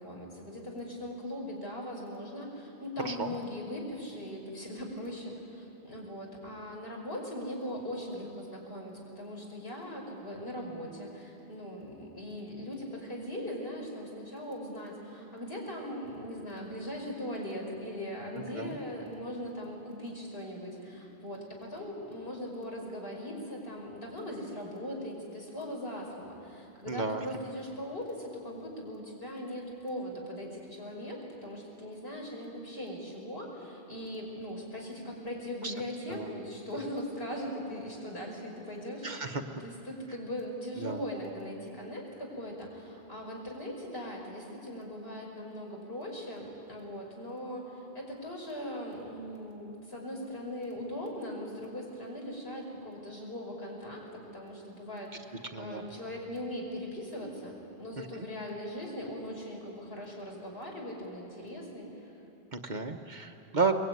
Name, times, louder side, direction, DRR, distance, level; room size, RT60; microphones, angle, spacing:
voice 1, 0.0-39.3 39.6-62.1, equal, 70° left, -1 dB, 5.6 m, -40 dB
voice 2, 26.9-27.2 35.6-35.7 36.1-36.2 39.0-39.4 40.8-41.0 55.5-55.9 58.2-58.3 62.5-63.7, right 4 dB, 45° right, 5 dB, 1.2 m, -32 dB
23.5 x 21.0 x 9.4 m, 2.8 s
omnidirectional pair, 1.1 m